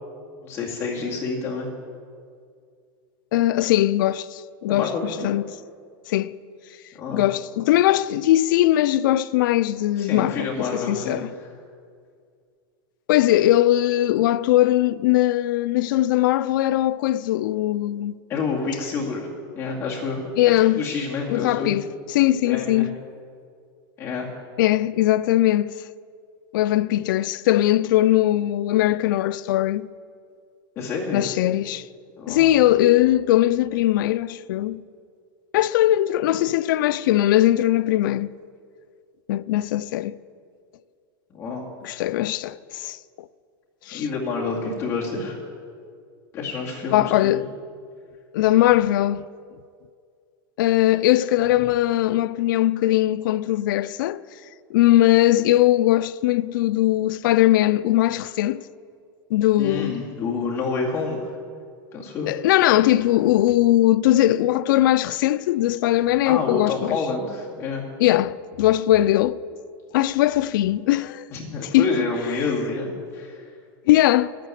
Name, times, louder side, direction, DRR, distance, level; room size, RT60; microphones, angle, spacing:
voice 1, 0.4-1.7 4.7-5.3 6.9-7.2 10.0-11.2 18.3-19.3 19.6-20.2 20.8-21.7 22.4-22.9 24.0-24.3 30.8-31.3 32.2-32.5 41.3-41.6 41.9-42.0 43.9-45.4 46.3-47.5 59.6-61.2 61.9-62.3 66.2-67.8 71.3-73.4, left 4 dB, 20° left, 2.2 m, -28 dB
voice 2, 3.3-5.5 6.1-6.3 7.1-11.3 13.1-18.1 20.4-20.8 21.3-21.8 22.1-22.9 24.6-25.7 26.5-29.9 31.1-31.8 32.3-34.8 35.5-38.3 39.3-40.2 41.8-43.3 43.9-44.0 46.9-47.5 48.3-49.2 50.6-54.2 54.7-58.6 59.3-60.0 62.3-67.0 68.0-69.4 69.9-71.3 71.7-71.9 73.9-74.3, left 14 dB, 60° left, 0.4 m, -20 dB
11.0 x 9.1 x 9.2 m
supercardioid pair, 170°, 12 cm